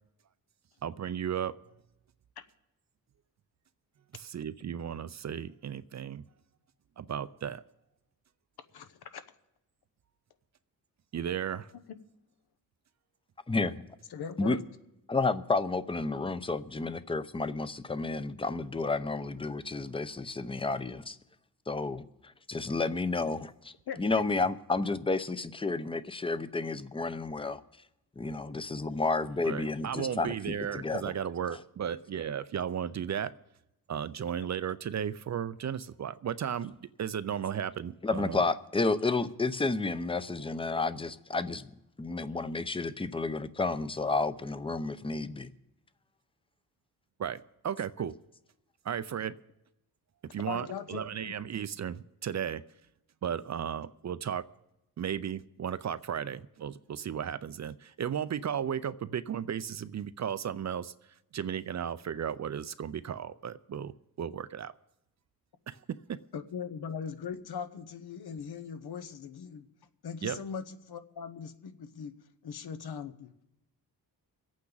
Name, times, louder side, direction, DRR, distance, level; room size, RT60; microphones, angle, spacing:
voice 1, 0.8-1.6 4.1-6.2 7.0-7.6 11.1-11.7 29.4-33.3 33.9-38.4 47.2-48.1 48.8-49.4 50.3-52.6 53.2-54.4 55.0-64.7 65.7-66.2 70.2-70.4, right 8 dB, 45° right, 0.5 m, -35 dB
voice 2, 8.7-9.2 14.1-14.6 23.9-24.0 50.5-51.3 66.3-69.6 70.0-72.1 72.4-73.3, left 6 dB, 75° left, 1.0 m, -40 dB
voice 3, 13.5-13.8 14.4-14.6 15.1-21.2 21.7-27.6 28.2-30.3 30.7-31.0 38.0-41.7 42.0-45.5, left 3 dB, 15° left, 0.7 m, -31 dB
25.0 x 8.6 x 4.0 m
cardioid pair, 85°, 39 cm